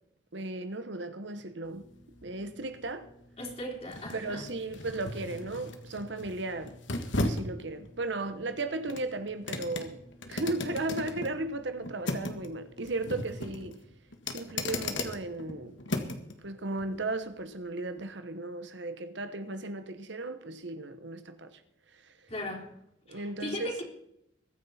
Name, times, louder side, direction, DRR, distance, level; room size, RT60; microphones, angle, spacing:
voice 1, 0.3-1.9 2.2-3.1 4.1-6.8 7.1-10.0 10.3-13.8 14.3-15.8 16.4-21.6 21.9-22.3 23.1-23.8, right 2 dB, 70° right, 1.2 m, -36 dB
sound 1, 1.6-16.3 16.8-16.9, left 2 dB, 75° left, 1.8 m, -37 dB
voice 2, 3.4-4.5 22.3-22.8 23.1-23.8, left 1 dB, 35° left, 3.9 m, -38 dB
22.5 x 9.8 x 4.4 m
head